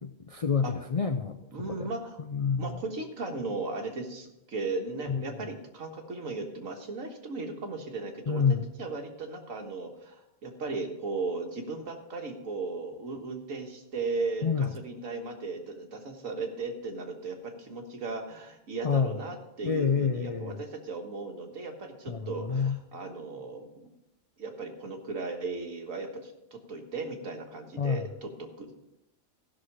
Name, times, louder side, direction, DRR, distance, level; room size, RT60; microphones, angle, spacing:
voice 1, 0.0-1.4 1.7-1.8 2.3-2.8 5.1-5.2 8.3-8.6 14.4-14.7 18.8-19.1 19.6-20.6 22.1-22.8 27.8-28.1, left 6 dB, 60° left, 7 dB, 0.3 m, -28 dB
voice 2, 1.5-2.2 2.6-8.4 8.8-23.9 24.4-28.7, right 3 dB, 80° right, 3 dB, 1.9 m, -36 dB
15.0 x 6.3 x 4.8 m, 0.89 s
omnidirectional pair, 1.4 m